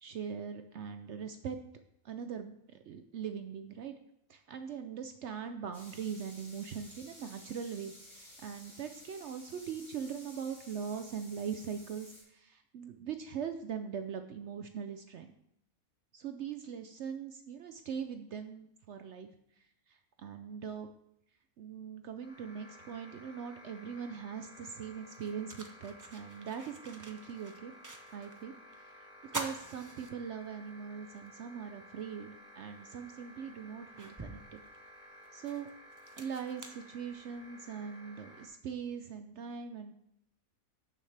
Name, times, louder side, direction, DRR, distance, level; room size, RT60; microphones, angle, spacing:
voice 1, 0.0-1.6 2.0-3.9 4.3-15.3 16.1-19.3 19.9-20.9 21.6-27.7 28.1-34.6 35.3-35.7 36.2-39.9, right 7 dB, 65° right, 7 dB, 0.7 m, -41 dB
sound 1, 5.7-12.2, left 1 dB, 30° left, 3.8 m, -54 dB
sound 2, 22.2-38.5, equal, 90° left, 1.8 m, -55 dB
sound 3, 24.4-24.5 25.0-28.4 28.7-28.8 29.2-30.7 31.2-31.3 32.7-32.8 33.4-37.6, right 2 dB, 30° right, 0.3 m, -46 dB
12.0 x 6.4 x 3.3 m, 0.77 s
omnidirectional pair, 1.5 m